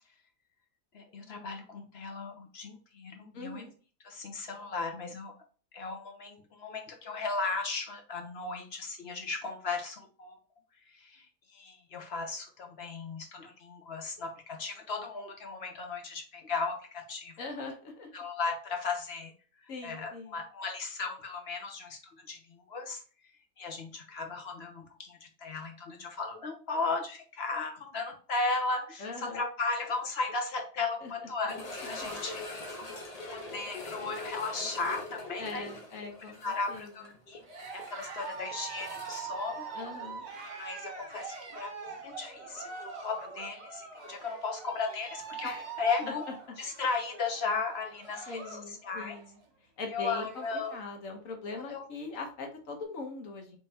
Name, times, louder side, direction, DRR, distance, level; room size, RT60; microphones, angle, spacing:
voice 1, 0.9-3.6 4.0-5.3 5.7-10.4 10.9-17.4 18.1-19.3 19.6-23.0 23.6-32.4 33.3-35.7 36.4-37.4 37.7-39.7 40.5-46.2 46.6-49.2 49.9-50.8 51.7-51.8, left 4 dB, 50° left, 3 dB, 1.2 m, -36 dB
voice 2, 3.3-3.7 17.4-18.1 19.7-20.4 29.0-29.4 31.0-31.1 32.0-32.1 35.4-36.9 39.7-40.2 45.4-45.6 46.1-46.2 48.3-49.4 49.8-50.5 50.7-53.6, left 3 dB, 70° left, 3 dB, 1.5 m, -41 dB
sound 1, 31.5-40.4 40.6-40.7 41.4-41.5 44.0-44.1, left 2 dB, 35° left, 0.8 m, -43 dB
Cheering, 37.4-48.7 49.0-49.4 49.8-49.9 50.1-50.9, right 5 dB, 55° right, 1.2 m, -43 dB
5.2 x 3.4 x 2.8 m, 0.39 s
omnidirectional pair, 1.4 m